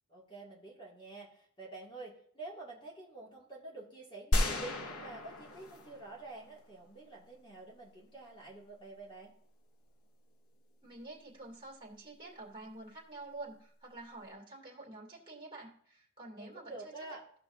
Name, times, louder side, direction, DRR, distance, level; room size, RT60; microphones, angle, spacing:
voice 1, 0.1-9.3 16.4-17.2, right 2 dB, 25° left, -4 dB, 2.3 m, -48 dB
sound 1, 4.3-6.6, left 1 dB, 75° left, 1.1 m, -33 dB
voice 2, 10.8-16.9, right 2 dB, 20° right, -3 dB, 2.3 m, -48 dB
15.0 x 5.8 x 2.6 m, 0.63 s
head